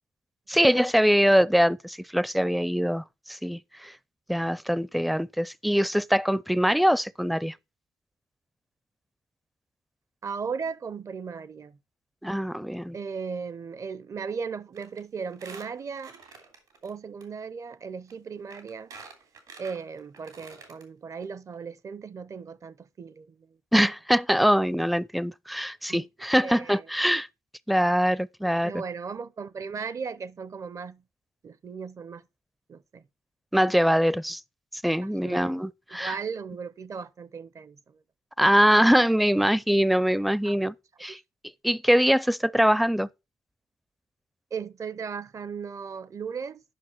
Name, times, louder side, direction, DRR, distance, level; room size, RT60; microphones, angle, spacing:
voice 1, 0.5-3.9 4.3-7.5 12.2-13.0 23.7-27.3 27.7-28.8 33.5-34.4 34.8-36.2 38.4-40.7 41.0-41.2 41.6-43.1, equal, ahead, 0.4 m, -23 dB
voice 2, 10.2-11.8 12.9-16.2 16.8-18.9 19.6-23.6 25.9-26.0 26.4-26.9 28.6-31.0 31.4-32.2 32.7-33.0 35.0-35.6 35.9-38.0 40.4-40.6 41.1-41.2 44.5-46.6, right 5 dB, 50° right, 0.6 m, -37 dB
Squeak, 14.7-15.0 15.3-16.9 17.2-17.3 18.1-18.2 18.5-20.8 21.2-21.3 21.5-21.6, right 5 dB, 80° right, 2.9 m, -47 dB
10.0 x 5.6 x 4.4 m
supercardioid pair, 50°, 7 cm